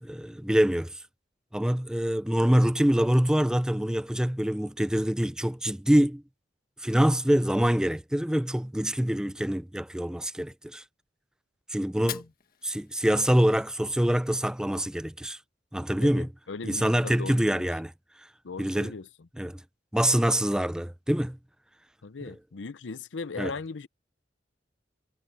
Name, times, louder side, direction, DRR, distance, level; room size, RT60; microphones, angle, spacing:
voice 1, 0.0-1.0 1.5-6.2 6.8-10.8 11.7-12.2 12.6-15.4 15.7-16.3 16.6-17.9 18.6-18.9 19.4-19.6 19.9-21.4 23.4-23.5, equal, 5° right, 0.4 m, -25 dB
Fire, 11.9-13.9, left 10 dB, 55° left, 1.4 m, -43 dB
voice 2, 16.0-17.6 18.4-19.1 22.0-23.9, left 4 dB, 90° left, 0.7 m, -38 dB
head